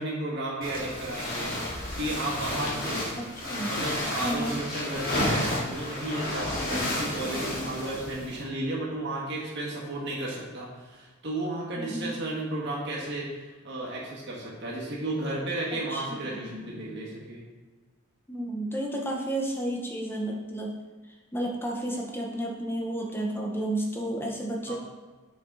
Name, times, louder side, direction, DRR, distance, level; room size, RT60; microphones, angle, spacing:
voice 1, 0.0-3.0 3.7-17.4 24.7-24.8, right 1 dB, 55° right, -5 dB, 1.9 m, -33 dB
sound 1, 0.6-8.4, left 1 dB, 45° left, 2.2 m, -31 dB
voice 2, 3.2-3.7 4.2-4.5 6.7-7.0 11.8-12.1 15.9-16.5 18.3-20.7 21.3-24.7, right 1 dB, 10° left, -1 dB, 1.0 m, -32 dB
6.1 x 6.1 x 4.0 m, 1.4 s
head